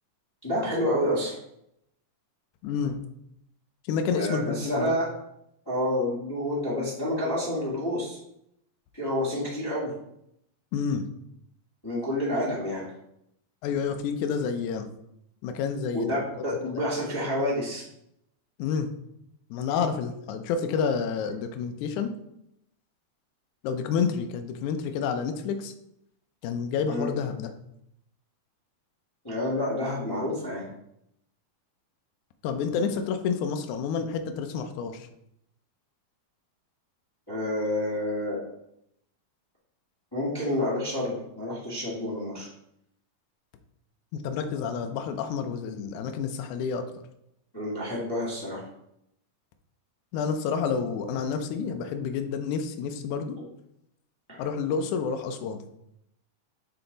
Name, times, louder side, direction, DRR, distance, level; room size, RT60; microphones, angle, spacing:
voice 1, 0.4-1.4 4.1-5.1 5.6-8.2 8.9-9.9 11.8-12.9 15.9-17.8 26.9-27.1 29.2-30.6 37.3-38.4 40.1-42.5 47.5-48.6 53.4-53.5 54.3-54.4, left 1 dB, 30° left, -8 dB, 0.4 m, -29 dB
voice 2, 2.6-3.0 3.8-4.9 10.7-11.1 13.6-14.9 15.4-16.2 16.6-16.8 18.6-18.9 19.5-22.1 23.6-25.7 26.4-27.5 32.4-35.1 44.1-46.8 50.1-53.4 54.4-55.6, left 6 dB, 90° left, 6 dB, 1.7 m, -29 dB
7.7 x 3.4 x 3.9 m, 0.77 s
omnidirectional pair, 4.2 m